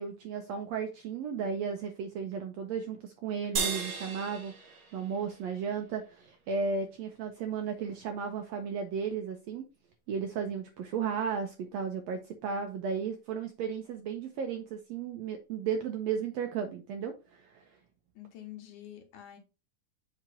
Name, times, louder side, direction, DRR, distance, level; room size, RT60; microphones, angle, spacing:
voice 1, 0.0-9.6 10.1-17.6, right 6 dB, 80° right, 1.6 m, -34 dB
sound 1, 3.6-6.1, right 5 dB, 55° right, 1.6 m, -36 dB
voice 2, 18.2-19.4, left 12 dB, 70° left, 2.5 m, -47 dB
7.6 x 2.9 x 4.9 m
omnidirectional pair, 3.7 m